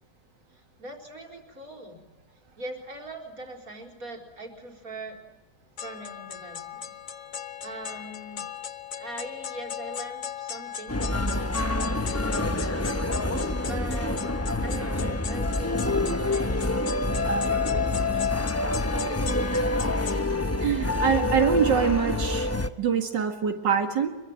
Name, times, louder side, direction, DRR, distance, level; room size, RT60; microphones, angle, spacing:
voice 1, 0.5-2.0 2.6-5.2 5.8-6.9 7.6-8.5 9.0-12.9 13.7-14.3 14.6-16.5 17.3-19.1, right 2 dB, 50° right, 3 dB, 4.6 m, -41 dB
sound 1, 5.8-20.2, left 9 dB, 55° left, 1.4 m, -38 dB
sound 2, 10.9-22.7, left 2 dB, 15° left, 0.6 m, -27 dB
voice 2, 20.6-22.5 22.8-24.1, right 7 dB, 90° right, 4 dB, 2.6 m, -24 dB
26.0 x 23.0 x 9.2 m, 1.1 s
omnidirectional pair, 1.9 m